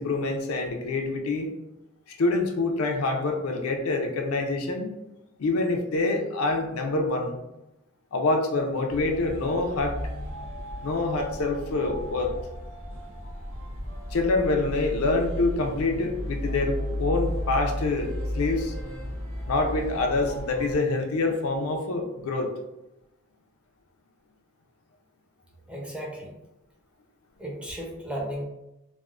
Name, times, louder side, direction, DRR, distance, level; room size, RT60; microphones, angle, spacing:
voice 1, 0.0-1.5 2.2-4.9 5.4-7.4 8.1-10.0 10.8-12.3 14.1-18.7 19.5-22.5, left 2 dB, 90° left, 3 dB, 0.5 m, -26 dB
sound 1, 8.9-20.8, left 1 dB, 85° right, 1.3 m, -34 dB
voice 2, 25.7-26.3 27.4-28.4, equal, 5° right, -2 dB, 0.5 m, -34 dB
3.4 x 2.0 x 2.4 m, 0.93 s
head